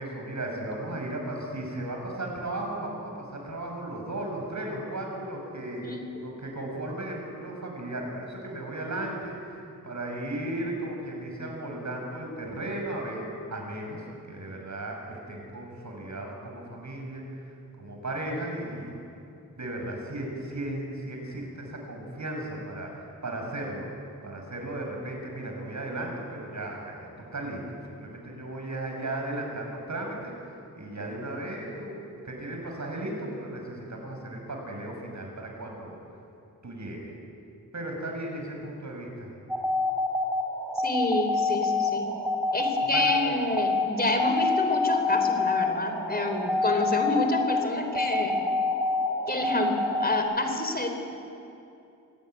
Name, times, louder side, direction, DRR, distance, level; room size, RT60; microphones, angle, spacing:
voice 1, 0.0-5.9 6.2-13.3 13.5-17.2 17.8-19.0 19.6-23.9 24.2-36.0 36.6-37.1 37.7-39.3 42.9-43.0, right 1 dB, 55° right, 1 dB, 7.0 m, -35 dB
sound 1, 39.5-50.2, left 3 dB, 5° right, 3.5 m, -27 dB
voice 2, 40.8-42.1 42.5-48.4 49.3-50.9, left 2 dB, 30° left, 5 dB, 4.1 m, -28 dB
27.0 x 18.0 x 9.4 m, 2.7 s
cardioid pair, 65°, 34 cm